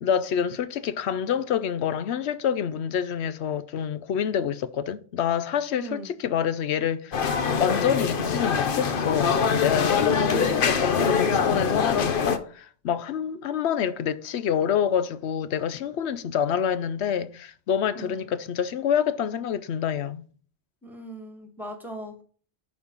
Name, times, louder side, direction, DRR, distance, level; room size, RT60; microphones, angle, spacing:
voice 1, 0.0-7.2 7.6-20.2, left 8 dB, 85° left, 0.9 m, -27 dB
voice 2, 5.7-6.1 10.0-10.7 17.9-18.2 20.8-22.2, right 3 dB, ahead, 1.9 m, -38 dB
sound 1, 7.1-12.4, left 6 dB, 55° left, 1.0 m, -24 dB
11.0 x 4.3 x 5.4 m
omnidirectional pair, 1.1 m